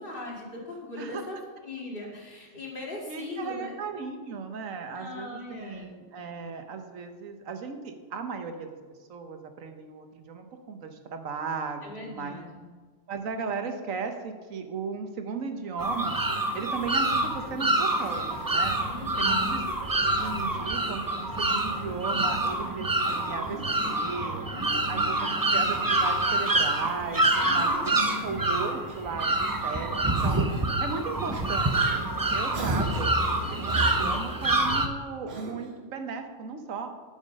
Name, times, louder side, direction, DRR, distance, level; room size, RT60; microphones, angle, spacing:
voice 1, 0.0-1.4 1.6-3.7 4.9-5.9 11.8-12.6 18.8-19.6 24.5-25.4 27.4-28.4 32.6-33.0, left 2 dB, 40° left, -2 dB, 2.4 m, -39 dB
voice 2, 3.1-8.8 9.1-12.4 13.1-16.2 16.5-18.8 19.2-19.6 20.2-24.4 24.9-30.4 30.8-32.0 32.3-33.1 33.5-36.9, right 5 dB, 85° right, 6 dB, 1.4 m, -36 dB
sound 1, 15.8-34.9, right 2 dB, 20° right, 0.6 m, -26 dB
Cough, 23.0-23.8 25.2-26.3 27.5-28.1 28.9-29.7 30.1-30.8 31.3-31.5 32.5-33.2 33.6-34.4 35.3-35.8, right 3 dB, 55° right, 1.4 m, -41 dB
11.0 x 7.3 x 5.3 m, 1.5 s
omnidirectional pair, 1.3 m